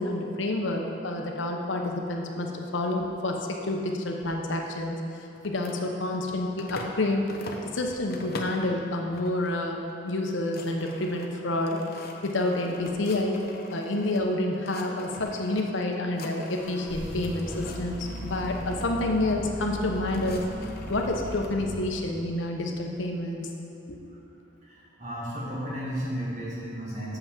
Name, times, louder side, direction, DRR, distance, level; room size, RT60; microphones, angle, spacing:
voice 1, 0.0-5.0 5.4-7.2 7.6-11.8 12.2-13.4 13.7-20.4 20.9-23.5 23.9-24.0, left 2 dB, 80° left, 2 dB, 1.0 m, -28 dB
sound 1, 5.4-7.0 7.3-8.7 9.1-9.6 9.9-10.0 10.2-14.2 14.5-15.6 15.9-16.8 17.1-18.9 19.7-21.5, left 2 dB, 55° left, 0.8 m, -43 dB
sound 2, 16.5-22.4, equal, 5° left, 1.2 m, -38 dB
voice 2, 24.6-27.2, equal, 40° right, -7 dB, 1.5 m, -34 dB
7.0 x 5.8 x 7.1 m, 2.9 s
head